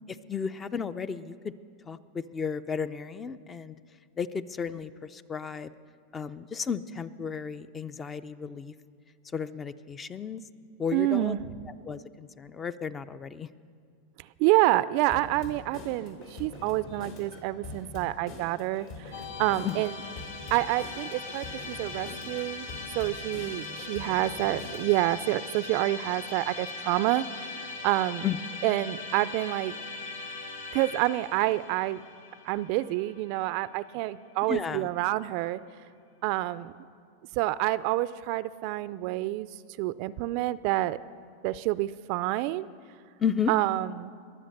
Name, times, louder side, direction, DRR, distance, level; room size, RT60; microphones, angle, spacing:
voice 1, 0.3-1.5 1.9-3.8 4.2-5.7 6.1-8.7 9.3-10.4 10.8-11.4 11.7-13.5 19.6-19.8 28.2-28.4 34.5-34.9 43.2-43.5, left 6 dB, 25° left, 14 dB, 0.5 m, -33 dB
voice 2, 10.9-11.4 14.4-18.9 19.4-19.9 20.5-22.7 22.9-27.2 27.8-28.3 28.6-29.7 30.7-32.0 32.5-35.6 36.2-36.7 37.4-39.5 39.8-41.0 41.4-42.7 43.5-44.1, right 17 dB, 55° right, 17 dB, 0.4 m, -28 dB
sound 1, 15.1-25.0, left 2 dB, 65° left, 3.3 m, -44 dB
Musical instrument, 19.1-34.3, left 3 dB, 85° left, 1.6 m, -40 dB
21.5 x 7.6 x 6.6 m, 2.2 s
hypercardioid pair, 110°, 0 cm